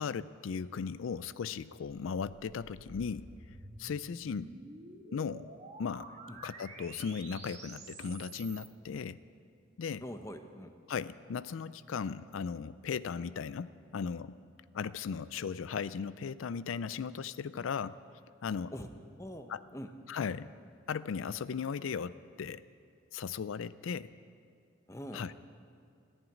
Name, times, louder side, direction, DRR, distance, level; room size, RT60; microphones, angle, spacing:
voice 1, 0.0-3.3 3.8-4.5 5.1-5.5 5.8-6.1 6.4-9.2 9.8-10.0 10.9-14.4 14.7-17.9 18.4-18.7 19.5-19.6 20.1-20.5 20.9-22.6 23.1-24.1 25.1-25.3, left 6 dB, 85° left, 16 dB, 0.4 m, -37 dB
sound 1, 2.0-8.7, right 3 dB, 35° right, 1.6 m, -50 dB
voice 2, 10.0-10.8 18.7-18.9 19.2-19.9 24.9-25.3, equal, 15° left, 7 dB, 0.8 m, -44 dB
14.0 x 11.0 x 9.3 m, 2.4 s
head